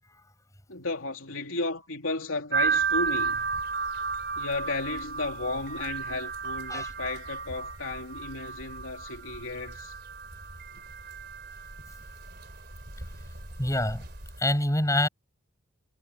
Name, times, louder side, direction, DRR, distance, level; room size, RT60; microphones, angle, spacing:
voice 1, 0.7-3.5 4.4-9.9, left 3 dB, 80° left, 3.0 m, -34 dB
sound 1, 2.5-14.4, right 6 dB, 50° right, 4.4 m, -33 dB
voice 2, 13.6-14.1 14.4-15.1, left 1 dB, 15° left, 7.8 m, -26 dB
head